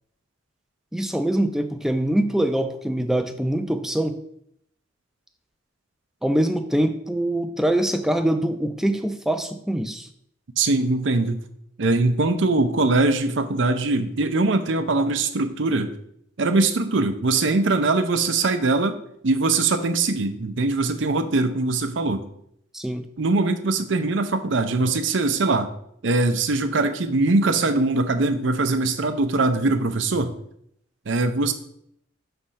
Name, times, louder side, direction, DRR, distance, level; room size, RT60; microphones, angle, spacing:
voice 1, 0.9-4.2 6.2-10.1 22.7-23.1, right 1 dB, ahead, 7 dB, 0.4 m, -24 dB
voice 2, 10.6-11.4 11.8-15.9 16.4-19.0 19.2-22.2 23.2-25.7 26.0-30.3 31.1-31.5, right 3 dB, 70° right, 9 dB, 0.6 m, -22 dB
6.2 x 3.3 x 5.6 m, 0.72 s
head